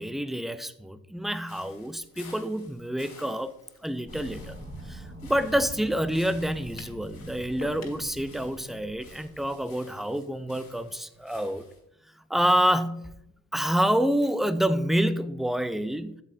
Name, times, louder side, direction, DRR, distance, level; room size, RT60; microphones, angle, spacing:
voice 1, 0.0-3.6 3.8-11.6 12.3-13.1 13.5-16.2, equal, ahead, 13 dB, 0.4 m, -28 dB
sound 1, 1.5-11.8, left 4 dB, 75° left, 2.3 m, -54 dB
sound 2, 4.0-9.9, right 1 dB, 20° right, 1.7 m, -44 dB
sound 3, 6.8-7.0 7.6-8.1, left 4 dB, 45° left, 1.6 m, -43 dB
8.1 x 7.5 x 2.6 m, 0.80 s
hypercardioid pair, 55°, 37 cm